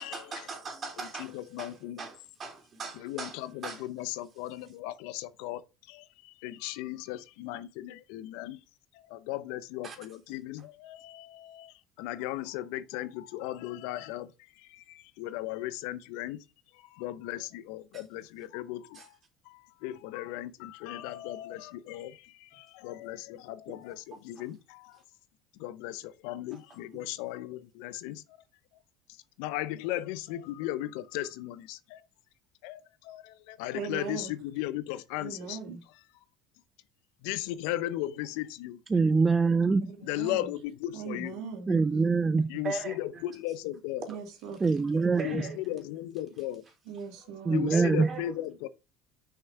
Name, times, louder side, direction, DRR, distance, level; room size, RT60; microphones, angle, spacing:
voice 1, 0.0-3.8 9.8-10.0 17.9-18.0 18.9-19.1 23.7-23.8 24.4-24.5 42.6-43.2 44.0-44.2 45.2-45.6 47.7-48.3, right 4 dB, 40° right, 3.4 m, -39 dB
voice 2, 1.0-2.1 3.0-8.6 8.9-16.4 16.7-19.2 19.4-25.0 25.5-28.2 29.4-32.1 32.6-35.6 37.2-38.8 40.0-41.4 42.5-44.1 45.2-46.6 47.5-48.7, left 14 dB, 70° left, 0.7 m, -37 dB
voice 3, 33.7-34.3 35.2-35.8 40.0-40.5 40.9-41.8 44.1-44.6 46.9-47.7, right 5 dB, 65° right, 2.7 m, -39 dB
voice 4, 38.9-39.9 41.7-42.5 44.6-45.4 47.5-48.1, right 4 dB, 25° right, 0.5 m, -24 dB
6.4 x 5.8 x 4.5 m
hypercardioid pair, 70°, 0 cm